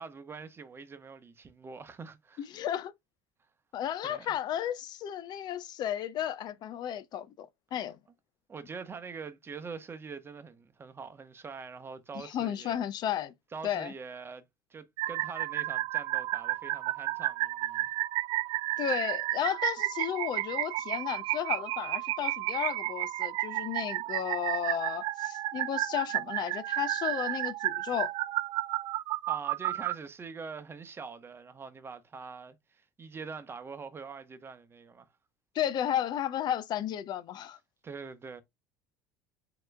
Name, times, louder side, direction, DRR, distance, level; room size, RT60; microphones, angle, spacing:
voice 1, 0.0-2.5 4.0-4.4 8.5-12.8 13.5-17.9 29.3-35.1 37.8-38.4, right 5 dB, 25° right, 0.9 m, -44 dB
voice 2, 2.4-2.9 3.7-8.0 12.2-13.3 13.6-13.9 18.8-28.1 35.5-37.6, left 10 dB, 50° left, 0.5 m, -33 dB
sound 1, 15.0-30.0, right 16 dB, 60° right, 0.3 m, -32 dB
7.6 x 2.9 x 2.2 m
supercardioid pair, 90°, 9 cm